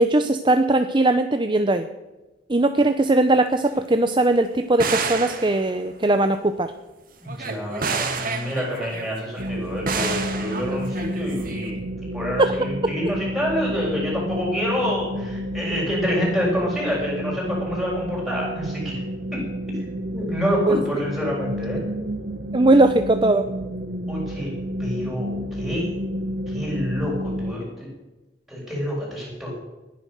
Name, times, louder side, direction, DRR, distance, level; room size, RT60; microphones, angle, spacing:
voice 1, 0.0-1.9 2.5-6.7 12.4-12.5 20.7-20.8 22.5-23.5, right 2 dB, 25° right, 8 dB, 0.7 m, -19 dB
sound 1, 3.1-3.2 3.7-3.8 4.8-6.3 7.3-9.6 9.9-11.7, right 5 dB, 50° right, 2.0 m, -30 dB
voice 2, 7.2-11.9 12.1-18.9 19.3-19.4 20.1-21.8 24.1-24.5 24.8-25.9 26.5-27.9 28.5-29.5, equal, ahead, -4 dB, 7.0 m, -27 dB
sound 2, 9.4-27.5, equal, 70° right, 1.6 m, -30 dB
19.5 x 10.5 x 6.5 m, 1.1 s
head